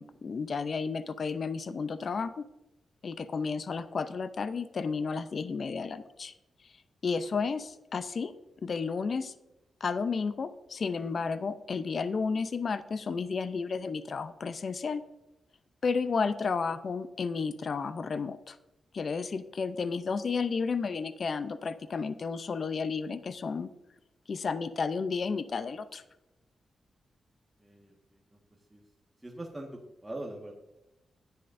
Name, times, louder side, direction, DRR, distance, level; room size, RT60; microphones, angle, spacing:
voice 1, 0.0-2.3 3.0-6.3 7.0-8.3 8.6-9.3 9.8-15.0 15.8-18.6 18.9-23.7 24.3-26.0, left 5 dB, 55° left, 13 dB, 0.5 m, -32 dB
voice 2, 27.6-28.4 28.7-28.8 29.2-30.5, right 1 dB, 20° right, -2 dB, 1.5 m, -43 dB
11.5 x 9.8 x 2.6 m, 0.98 s
cardioid pair, 70°, 0 cm